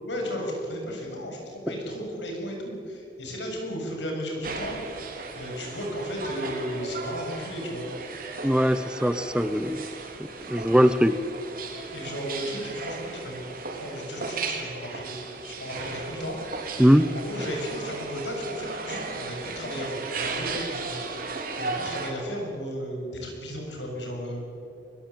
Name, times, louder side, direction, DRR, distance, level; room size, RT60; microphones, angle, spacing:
voice 1, 0.0-4.8 5.3-7.9 11.9-13.4 13.7-15.2 15.4-16.8 17.1-24.4, equal, 75° left, 1 dB, 7.1 m, -34 dB
sound 1, 4.4-22.1, right 3 dB, 50° right, 3.8 m, -36 dB
voice 2, 8.4-9.8 10.5-11.2 16.8-17.1, equal, 5° right, 12 dB, 0.6 m, -20 dB
23.0 x 20.5 x 8.6 m, 2.7 s
head